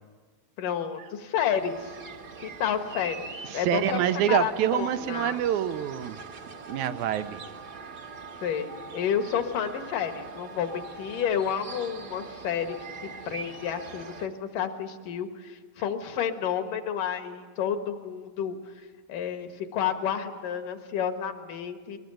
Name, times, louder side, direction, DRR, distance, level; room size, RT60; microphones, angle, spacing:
voice 1, 0.6-2.0 2.4-5.4 8.4-12.8 13.3-18.8 19.1-22.0, left 8 dB, 70° left, 6 dB, 3.0 m, -30 dB
sound 1, 1.5-14.3, right 4 dB, 45° right, 1.3 m, -42 dB
voice 2, 3.5-6.2 6.7-7.4, right 10 dB, 75° right, 11 dB, 2.1 m, -26 dB
22.5 x 21.0 x 9.1 m, 1.5 s
omnidirectional pair, 4.0 m